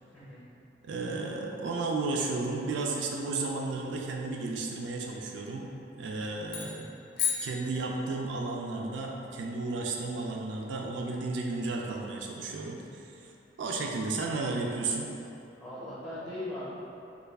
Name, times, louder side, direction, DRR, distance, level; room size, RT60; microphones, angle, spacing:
voice 1, 0.8-5.7 6.0-6.9 7.4-13.3 13.6-15.1, right 3 dB, 75° right, 0 dB, 0.3 m, -33 dB
sound 1, 6.5-8.4, left 8 dB, 60° left, 0.5 m, -34 dB
voice 2, 15.6-16.7, left 1 dB, 10° left, -10 dB, 0.6 m, -40 dB
3.2 x 2.3 x 3.3 m, 2.8 s
head